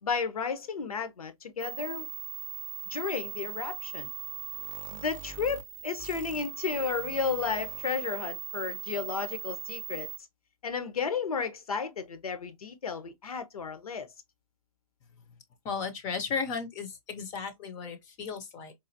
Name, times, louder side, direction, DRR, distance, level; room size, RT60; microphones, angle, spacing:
voice 1, 0.0-2.1 2.9-4.1 4.9-10.1 10.6-14.1, left 5 dB, 75° left, 0.9 m, -33 dB
sound 1, 1.6-10.2, right 13 dB, 60° right, 0.5 m, -40 dB
voice 2, 15.6-18.7, left 5 dB, 20° left, 0.5 m, -35 dB
4.0 x 2.5 x 2.6 m
hypercardioid pair, 140°, 19 cm